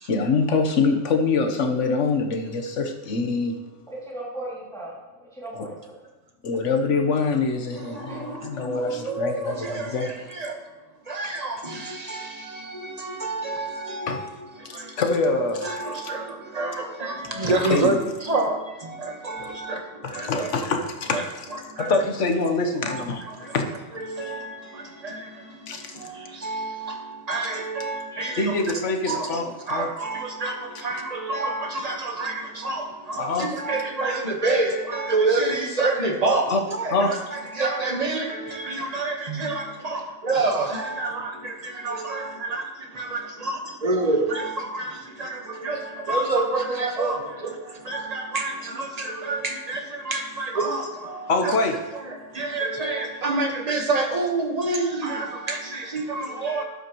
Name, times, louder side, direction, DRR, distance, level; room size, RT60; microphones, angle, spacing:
voice 1, 0.1-3.9 5.5-5.7 6.4-10.1 14.1-14.4 14.6-16.1 17.7-18.0 20.0-21.3 21.8-23.8 24.2-24.4 25.7-26.0 28.4-29.9 33.2-33.5 36.5-36.6 36.9-37.4 51.3-51.8, left 3 dB, 60° left, 1.3 m, -25 dB
voice 2, 3.9-5.0 5.3-6.0 8.1-8.2 28.1-28.4, right 1 dB, ahead, 2.6 m, -37 dB
voice 3, 7.7-10.6 11.1-14.3 14.6-15.0 15.6-17.9 18.2-20.5 21.1-21.2 21.8-21.9 22.9-23.0 23.4-23.5 24.0-28.5 29.1-29.3 29.7-51.5 52.1-56.6, right 3 dB, 30° right, 1.3 m, -28 dB
12.0 x 9.3 x 3.0 m
omnidirectional pair, 1.4 m